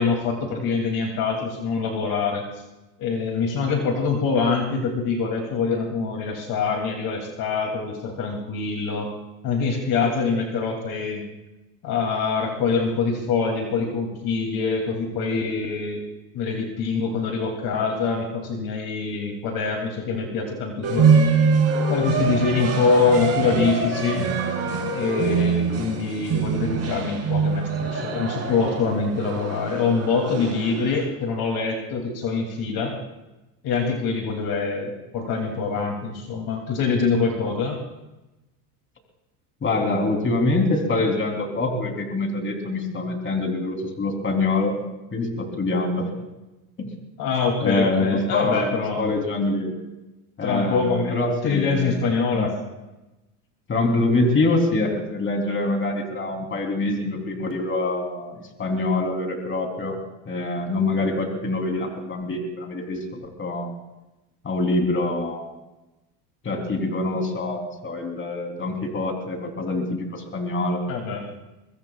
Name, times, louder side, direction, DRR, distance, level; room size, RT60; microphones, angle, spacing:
voice 1, 0.0-2.4 3.0-9.1 9.4-11.2 11.8-16.1 16.3-21.1 21.9-24.2 24.9-33.0 33.6-37.8 47.2-49.2 50.4-51.2 51.4-52.5 70.9-71.2, left 4 dB, 50° left, 1 dB, 2.8 m, -24 dB
sound 1, 20.8-31.0, right 5 dB, 30° right, 6.9 m, -24 dB
voice 2, 39.6-44.8 45.1-46.1 46.8-46.9 47.6-49.7 50.4-52.0 52.3-52.5 53.7-60.0 60.2-63.7 64.4-65.5 66.4-70.8, left 2 dB, 25° left, 2 dB, 3.4 m, -25 dB
23.5 x 22.0 x 2.4 m, 1.0 s
supercardioid pair, 110°, 46 cm